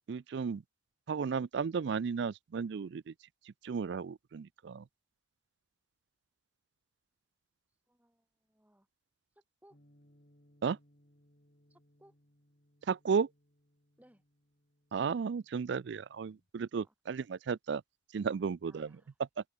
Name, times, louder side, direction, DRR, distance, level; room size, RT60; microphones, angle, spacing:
voice 1, 0.1-0.6 1.1-3.1 3.6-4.8 10.6-10.8 12.9-13.3 14.9-17.8 18.1-18.9, right 6 dB, 60° right, 0.3 m, -34 dB
voice 2, 7.7-8.9 9.3-9.8 11.7-12.1 14.0-14.2 16.8-16.9 18.6-19.2, equal, 5° right, 3.1 m, -65 dB
sound 1, 9.7-16.5, equal, 45° left, 4.8 m, -68 dB
head